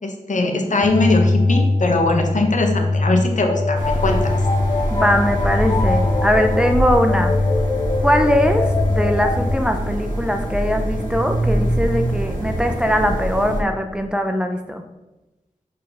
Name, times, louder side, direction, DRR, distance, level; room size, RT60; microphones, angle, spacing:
voice 1, 0.0-4.4, left 2 dB, 60° left, 3 dB, 1.1 m, -20 dB
sound 1, 0.8-9.5, left 2 dB, 30° left, 0.6 m, -21 dB
sound 2, 3.7-13.6, right 1 dB, 75° right, 1.5 m, -24 dB
voice 2, 4.9-7.3 8.0-14.8, equal, 5° right, 5 dB, 0.6 m, -20 dB
5.2 x 4.5 x 5.5 m, 1.0 s
wide cardioid pair, 75°, 14 cm